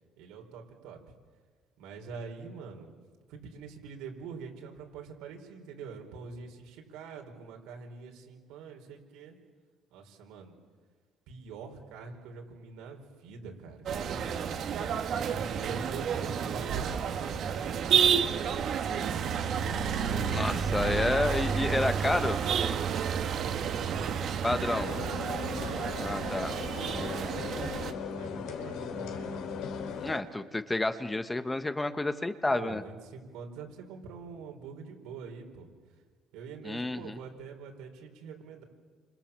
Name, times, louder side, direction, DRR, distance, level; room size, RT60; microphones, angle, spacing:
voice 1, 0.2-1.0 1.8-2.9 3.3-9.4 9.9-10.5 11.3-14.6 15.2-21.3 22.7-26.3 26.7-27.6 28.0-29.5 32.5-35.7 36.3-38.6, right 5 dB, 80° right, 2 dB, 5.1 m, -45 dB
sound 1, 13.9-27.9, right 7 dB, 45° right, 1.6 m, -30 dB
voice 2, 20.3-22.4 24.4-24.9 26.0-26.6 30.0-32.8 36.6-37.2, left 2 dB, 10° left, 10 dB, 1.0 m, -30 dB
sound 2, 24.6-30.2, left 6 dB, 70° left, 3.2 m, -38 dB
29.0 x 26.0 x 7.4 m, 1.5 s
cardioid pair, 145°, 0 cm